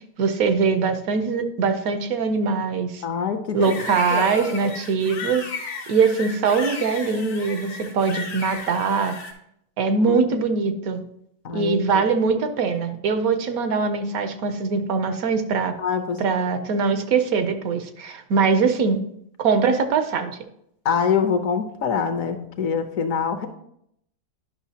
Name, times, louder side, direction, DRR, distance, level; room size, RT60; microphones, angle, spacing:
voice 1, 0.2-3.0 3.5-5.4 5.9-9.2 9.8-11.0 11.5-15.7 16.2-19.0 19.4-20.4, right 5 dB, 75° right, 8 dB, 1.2 m, -22 dB
voice 2, 3.0-3.8 4.1-4.7 10.1-10.2 11.4-12.0 15.8-16.2 20.8-23.5, left 6 dB, 70° left, 8 dB, 1.1 m, -25 dB
sound 1, 3.6-9.3, left 4 dB, 90° left, 1.7 m, -35 dB
10.0 x 5.6 x 2.8 m, 0.74 s
omnidirectional pair, 1.6 m